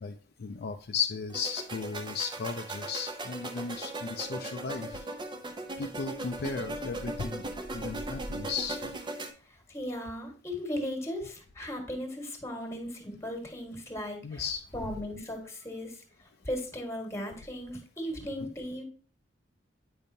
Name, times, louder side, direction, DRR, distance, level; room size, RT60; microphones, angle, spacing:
voice 1, 0.0-5.1 5.8-7.4 7.7-8.8 14.2-14.6, left 5 dB, 55° left, 6 dB, 0.4 m, -35 dB
sound 1, 1.3-9.3, right 2 dB, 25° right, 0.7 m, -38 dB
voice 2, 9.7-14.4 14.7-16.0 16.4-18.8, equal, 15° left, 3 dB, 1.5 m, -37 dB
8.6 x 5.3 x 2.7 m, 0.41 s
head